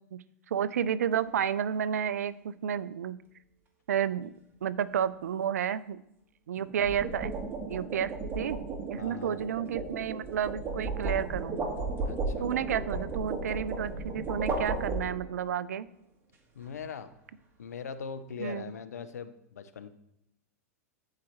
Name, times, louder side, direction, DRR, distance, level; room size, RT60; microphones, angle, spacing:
voice 1, 0.1-3.2 3.9-4.3 4.6-6.0 6.5-7.3 7.7-8.6 8.9-11.6 12.4-15.9 18.4-18.7, right 8 dB, 75° right, 17 dB, 0.4 m, -31 dB
Sheet Metal, 1.1-1.4 6.6-15.5, right 3 dB, 25° right, 1.6 m, -34 dB
voice 2, 9.0-9.4 12.0-12.5 16.5-17.1 17.6-19.9, left 6 dB, 80° left, 11 dB, 0.7 m, -41 dB
14.0 x 4.8 x 3.1 m, 0.78 s
hypercardioid pair, 105°, 9 cm